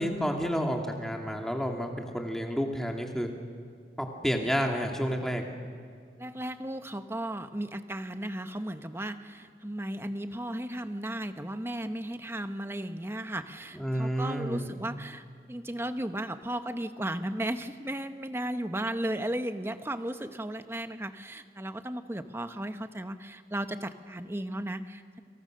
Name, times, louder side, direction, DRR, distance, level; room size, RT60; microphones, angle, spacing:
voice 1, 0.0-3.3 4.0-5.4 13.7-14.7, equal, ahead, 2 dB, 2.4 m, -30 dB
voice 2, 6.2-25.2, right 1 dB, 15° right, 9 dB, 1.0 m, -35 dB
30.0 x 25.0 x 6.6 m, 2.2 s
head